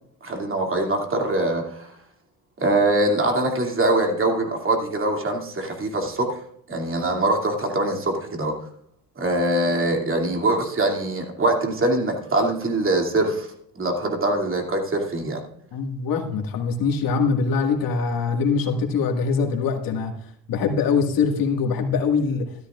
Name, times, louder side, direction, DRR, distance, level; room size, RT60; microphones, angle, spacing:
voice 1, 0.2-1.9 2.6-6.4 6.7-8.6 9.2-13.5 13.8-15.4, right 2 dB, 35° right, 2 dB, 2.6 m, -23 dB
voice 2, 15.7-20.2 20.5-22.6, left 5 dB, 65° left, 4 dB, 1.9 m, -23 dB
13.0 x 13.0 x 2.4 m, 0.66 s
cardioid pair, 90°, 37 cm